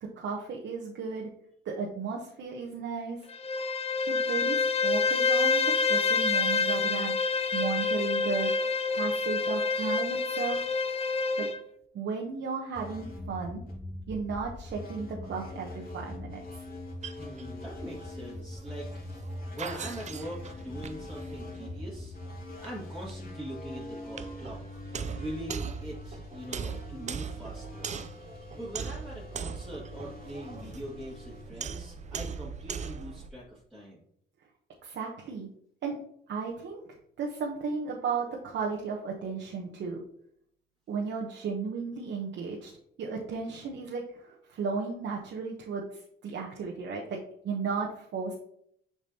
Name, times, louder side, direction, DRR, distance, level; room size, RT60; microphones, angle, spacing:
voice 1, 0.0-1.3 1.6-3.2 4.1-10.6 11.4-11.5 11.9-13.6 14.1-16.6 34.8-35.5 35.8-36.0 36.3-36.8 37.2-40.0 40.9-42.7 43.0-45.9 46.2-47.2 47.4-48.3, right 5 dB, 65° right, -1 dB, 1.0 m, -34 dB
Bowed string instrument, 3.3-11.6, left 4 dB, 30° left, 0.4 m, -27 dB
sound 1, 12.7-32.3, left 2 dB, 50° left, 2.6 m, -43 dB
sound 2, 16.7-33.3, right 6 dB, 35° right, 0.4 m, -41 dB
voice 2, 17.2-18.9 19.5-22.1 22.6-24.6 24.9-27.9 28.6-34.0, equal, ahead, -9 dB, 2.0 m, -42 dB
6.9 x 4.8 x 2.8 m, 0.68 s
cardioid pair, 90°, 20 cm